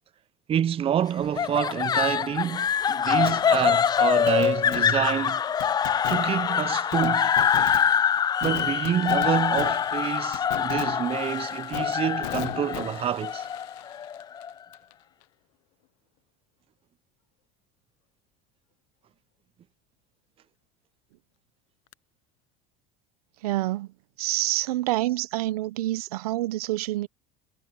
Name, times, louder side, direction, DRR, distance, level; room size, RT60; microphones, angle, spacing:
voice 1, 0.5-5.4 6.1-7.3 8.4-13.5, right 9 dB, 30° right, 0.6 m, -28 dB
sound 1, 1.4-14.5, left 8 dB, 20° left, 0.3 m, -25 dB
Fireworks, 3.3-14.9 15.2-15.3 21.9-22.0, left 26 dB, 70° left, 0.8 m, -40 dB
voice 2, 23.4-23.9 24.2-27.1, right 17 dB, 85° right, 0.9 m, -27 dB
supercardioid pair, 100°, 19 cm